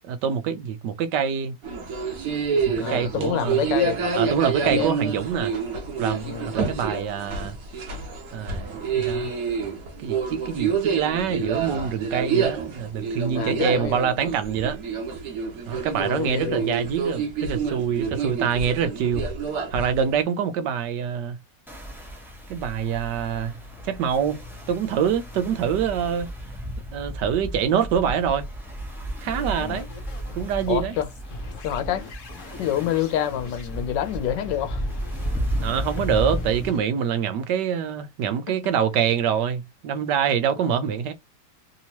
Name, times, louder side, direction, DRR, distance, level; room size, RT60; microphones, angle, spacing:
voice 1, 0.0-1.5 2.7-3.6 4.2-5.5 6.0-7.6 8.3-9.3 10.0-14.8 15.7-19.3 19.7-21.4 22.5-23.5 23.8-24.4 24.7-26.3 26.9-28.5 29.2-29.9 30.3-30.9 35.6-41.1, right 8 dB, 80° right, 1.3 m, -25 dB
sound 1, 1.6-20.2, right 5 dB, 60° right, 1.4 m, -28 dB
voice 2, 2.7-4.0 4.6-4.9 6.2-6.6 10.4-10.5 13.3-14.2 16.0-16.7 29.6-29.8 30.7-31.1 31.6-32.1 32.6-34.8 38.5-38.6 40.7-40.8, left 11 dB, 90° left, 1.3 m, -27 dB
sound 2, 21.7-36.7, right 1 dB, ahead, 0.8 m, -34 dB
sound 3, 29.3-36.8, left 3 dB, 50° left, 1.1 m, -40 dB
3.4 x 2.9 x 2.9 m
omnidirectional pair, 1.9 m